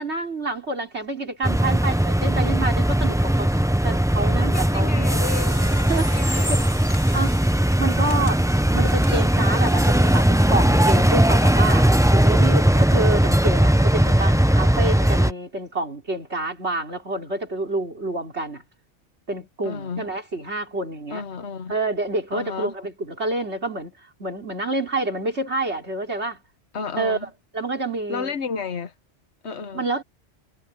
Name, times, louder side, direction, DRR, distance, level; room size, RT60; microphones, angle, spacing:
voice 1, 0.0-3.6 3.8-5.1 5.9-6.6 7.1-7.4 7.8-18.6 19.3-21.2 21.7-26.4 27.0-27.3 27.5-28.3 29.7-30.0, right 2 dB, 80° right, 4.4 m, -28 dB
sound 1, 1.4-15.3, right 1 dB, 5° right, 0.7 m, -19 dB
voice 2, 4.4-5.6 6.1-6.6 10.8-11.1 19.6-20.1 21.1-21.7 22.3-22.7 26.7-27.3 28.1-28.9 29.4-29.9, left 5 dB, 80° left, 1.5 m, -32 dB
sound 2, 5.2-10.3, equal, 25° left, 5.0 m, -40 dB
omnidirectional pair, 1.1 m